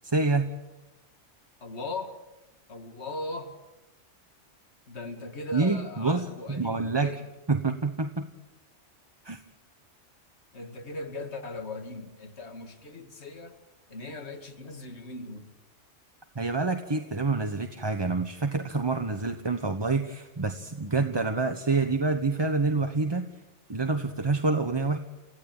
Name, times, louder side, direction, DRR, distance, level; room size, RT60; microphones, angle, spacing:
voice 1, 0.1-0.5 5.5-7.1 7.5-8.3 9.2-9.4 16.3-23.2 23.7-25.0, right 3 dB, 20° right, 7 dB, 1.1 m, -27 dB
voice 2, 1.6-2.2 2.7-3.6 4.9-7.3 10.5-13.6 13.9-15.5, left 2 dB, 60° left, 6 dB, 2.4 m, -39 dB
29.0 x 15.5 x 9.0 m, 1.0 s
omnidirectional pair, 1.3 m